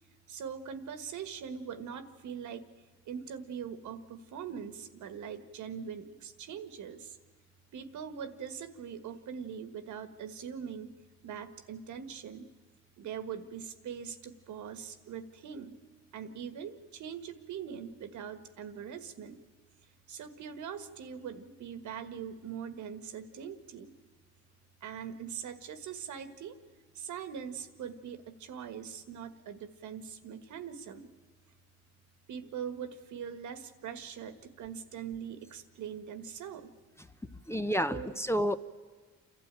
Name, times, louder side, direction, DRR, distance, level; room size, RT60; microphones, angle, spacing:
voice 1, 0.3-2.7 3.1-7.2 7.7-10.9 11.2-12.5 13.0-15.8 16.1-19.4 20.1-23.9 24.8-26.6 26.9-31.1 32.3-36.7 37.3-38.1, right 7 dB, 75° right, 10 dB, 1.6 m, -42 dB
voice 2, 37.5-38.6, equal, 10° left, 10 dB, 0.7 m, -29 dB
28.5 x 12.5 x 9.0 m, 1.5 s
cardioid pair, 90°, 30 cm